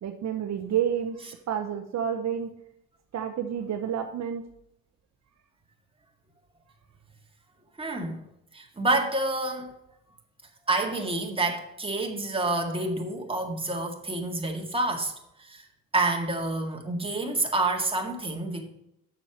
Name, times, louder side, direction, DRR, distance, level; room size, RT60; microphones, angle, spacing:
voice 1, 0.0-2.5 3.1-4.4, right 8 dB, 55° right, 6 dB, 0.9 m, -29 dB
voice 2, 7.8-8.2 8.5-9.7 10.7-15.1 15.4-15.7 15.9-18.7, right 2 dB, 15° right, 2 dB, 1.9 m, -28 dB
6.8 x 6.5 x 6.0 m, 0.79 s
supercardioid pair, 75°, 33 cm